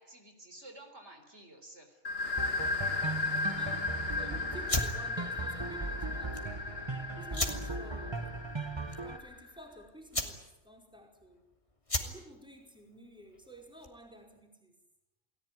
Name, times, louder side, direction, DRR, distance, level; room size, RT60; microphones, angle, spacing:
voice 1, 0.0-2.0, right 1 dB, 60° right, 5 dB, 4.4 m, -52 dB
sound 1, 2.0-9.5, left 3 dB, 50° left, 2.2 m, -36 dB
sound 2, 2.4-9.2, right 3 dB, 20° right, 1.3 m, -38 dB
voice 2, 3.4-6.7 7.2-8.4 9.0-11.4 12.0-14.8, right 1 dB, 5° right, 1 dB, 4.9 m, -52 dB
sound 3, 4.6-14.1, left 1 dB, 25° left, 2.8 m, -39 dB
29.5 x 19.0 x 9.6 m, 0.99 s
omnidirectional pair, 1.3 m